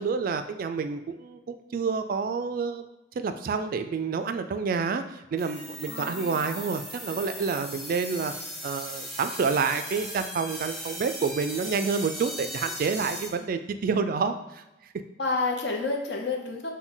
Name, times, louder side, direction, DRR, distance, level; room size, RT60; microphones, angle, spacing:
voice 1, 0.0-2.9 3.2-8.3 8.6-14.6, right 5 dB, 50° right, 9 dB, 0.3 m, -28 dB
sound 1, 5.4-13.3, equal, ahead, 0.7 m, -38 dB
voice 2, 5.9-6.5 15.2-16.7, left 3 dB, 65° left, 1 dB, 0.8 m, -30 dB
6.0 x 2.2 x 3.8 m, 0.98 s
head